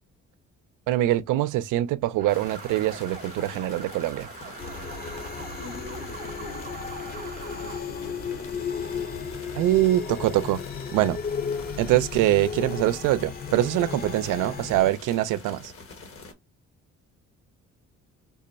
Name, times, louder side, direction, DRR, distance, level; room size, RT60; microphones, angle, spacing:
voice 1, 0.9-4.3 9.5-10.6 10.9-11.2 11.8-15.7, right 14 dB, 85° right, 0.5 m, -24 dB
sound 1, 2.2-7.8, right 7 dB, 30° right, 0.6 m, -43 dB
sound 2, 2.3-16.3, left 4 dB, 45° left, 1.1 m, -45 dB
sound 3, 4.6-14.9, left 6 dB, 30° left, 0.7 m, -34 dB
voice 2, 5.6-8.9, left 3 dB, 80° left, 1.1 m, -44 dB
3.6 x 2.2 x 3.9 m
cardioid pair, 90°, 30 cm